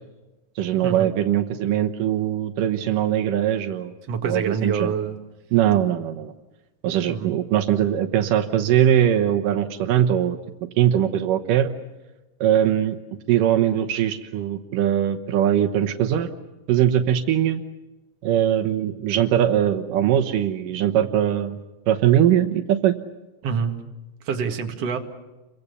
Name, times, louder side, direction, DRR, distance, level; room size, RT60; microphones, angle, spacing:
voice 1, 0.6-3.9 4.2-4.9 5.5-6.3 6.8-10.4 10.8-11.7 12.4-13.0 13.3-16.3 16.7-17.6 18.2-21.6 21.9-22.9, right 10 dB, 85° right, 6 dB, 2.7 m, -21 dB
voice 2, 4.1-5.2 7.1-7.3 23.4-23.7 24.2-25.0, right 6 dB, 50° right, 4 dB, 2.9 m, -26 dB
29.5 x 24.0 x 6.9 m, 1.1 s
omnidirectional pair, 3.7 m